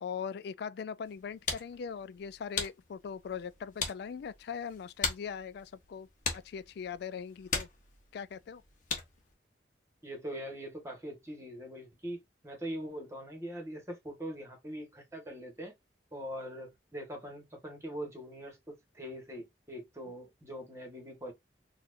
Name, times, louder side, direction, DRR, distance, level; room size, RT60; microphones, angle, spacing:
voice 1, 0.0-6.1 6.3-7.7 8.1-8.6, left 7 dB, 60° left, 0.3 m, -40 dB
sound 1, 1.0-9.3, left 4 dB, 45° left, 1.0 m, -40 dB
voice 2, 10.0-15.7 16.1-21.3, equal, 15° right, 1.3 m, -42 dB
4.3 x 2.4 x 2.5 m
head